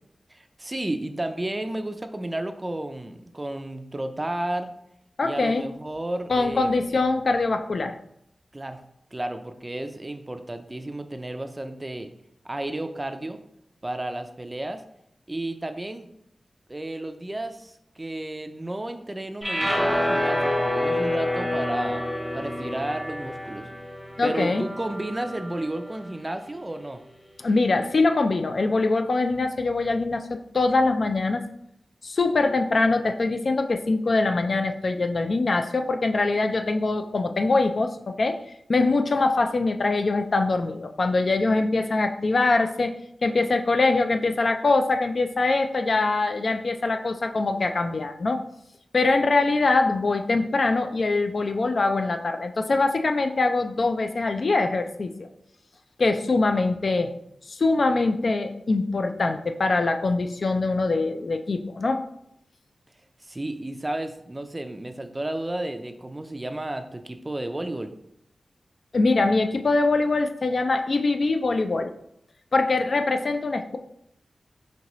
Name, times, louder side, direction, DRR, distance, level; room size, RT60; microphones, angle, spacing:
voice 1, 0.3-4.7 5.2-6.7 8.5-8.8 9.1-12.1 12.4-13.4 13.8-14.8 15.3-16.1 16.7-22.0 22.3-23.7 24.2-27.0 63.2-67.9, right 1 dB, 25° right, 8 dB, 0.4 m, -32 dB
voice 2, 5.2-5.7 6.3-8.0 24.2-24.6 27.4-31.4 32.0-38.4 38.7-42.9 43.2-48.4 48.9-55.3 56.0-57.1 57.5-62.0 68.9-71.9 72.5-73.8, left 3 dB, 60° left, 6 dB, 0.4 m, -23 dB
sound 1, 19.4-25.7, left 1 dB, 10° left, 0.8 m, -28 dB
5.2 x 2.8 x 3.0 m, 0.74 s
wide cardioid pair, 75°, 0 cm